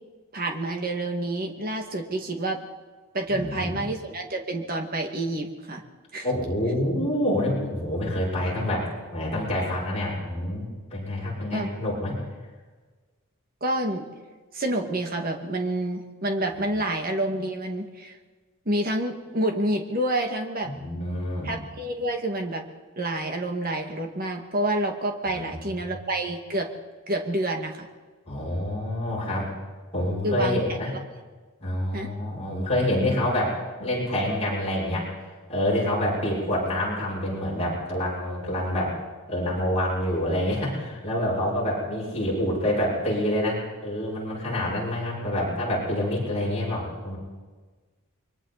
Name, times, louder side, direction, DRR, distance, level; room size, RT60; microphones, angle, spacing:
voice 1, 0.3-2.6 3.1-5.8 6.1-6.3 11.5-11.7 13.6-14.1 14.5-18.2 18.7-20.7 21.4-22.6 23.0-26.7 27.1-27.9 30.2-31.0 31.9-32.1, right 1 dB, 40° right, 3 dB, 2.2 m, -28 dB
voice 2, 3.3-3.8 6.2-12.1 20.6-21.6 25.3-25.5 28.3-29.5 29.9-30.9 31.6-35.1 35.5-39.0 39.3-47.2, left 1 dB, 30° left, -5 dB, 7.4 m, -27 dB
29.5 x 23.0 x 4.3 m, 1.4 s
head